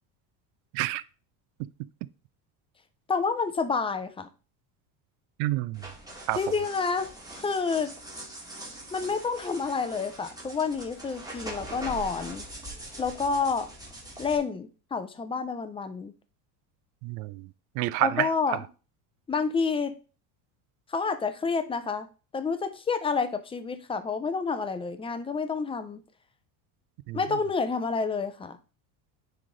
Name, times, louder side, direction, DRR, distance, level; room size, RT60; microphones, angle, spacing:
voice 1, 3.1-4.3 6.4-7.1 7.4-7.9 8.9-12.4 13.0-13.7 14.2-16.1 18.0-18.6 19.3-19.9 20.9-22.1 22.3-26.0 27.1-28.6, left 5 dB, 10° left, 0.5 m, -29 dB
voice 2, 5.4-5.8 6.3-6.4 17.0-17.5 17.8-18.6 27.1-27.2, right 17 dB, 70° right, 0.6 m, -28 dB
sound 1, 5.7-14.4, right 1 dB, 10° right, 1.8 m, -42 dB
9.4 x 3.4 x 3.9 m
cardioid pair, 130°, 46 cm